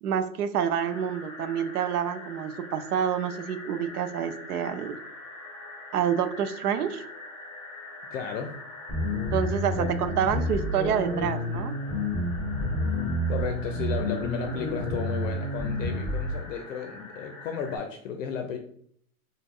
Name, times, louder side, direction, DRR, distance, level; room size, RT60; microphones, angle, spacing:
voice 1, 0.0-5.0 5.9-7.0 9.3-11.7, right 8 dB, 90° right, 11 dB, 0.6 m, -28 dB
sound 1, 0.8-17.8, left 2 dB, 15° left, 0.7 m, -44 dB
voice 2, 8.1-8.5 9.8-10.1 13.3-18.6, left 6 dB, 60° left, 5 dB, 0.5 m, -34 dB
sound 2, 8.9-16.3, left 1 dB, 15° right, 1.1 m, -29 dB
2.9 x 2.2 x 3.5 m, 0.64 s
hypercardioid pair, 145°, 44 cm